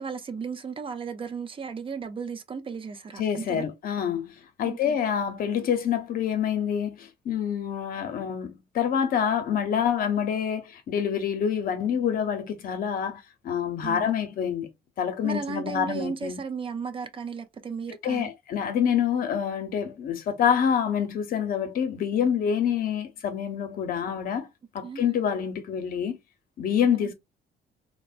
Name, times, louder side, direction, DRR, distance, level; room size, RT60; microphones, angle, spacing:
voice 1, 0.0-3.7 4.6-5.0 13.8-14.1 15.2-18.3 24.8-25.0 27.0-27.1, right 5 dB, 30° right, 0.5 m, -35 dB
voice 2, 3.2-4.3 4.6-14.7 15.0-16.4 18.0-24.5 24.7-26.2 26.6-27.1, left 8 dB, 60° left, 0.7 m, -27 dB
3.2 x 2.1 x 2.4 m
cardioid pair, 110°, 17 cm